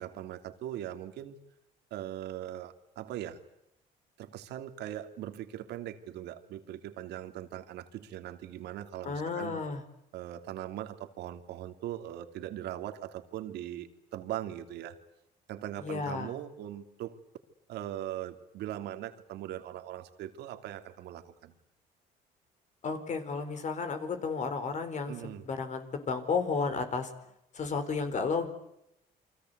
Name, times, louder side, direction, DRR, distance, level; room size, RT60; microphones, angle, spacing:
voice 1, 0.0-1.4 1.9-3.4 4.2-9.6 10.1-15.0 15.5-17.2 17.7-21.5 25.1-25.5, right 12 dB, 80° right, 7 dB, 3.0 m, -40 dB
voice 2, 9.0-9.8 15.8-16.3 22.8-27.1 27.5-28.5, left 4 dB, 45° left, 8 dB, 4.6 m, -32 dB
29.5 x 24.0 x 8.2 m, 0.81 s
cardioid pair, 110°, 17 cm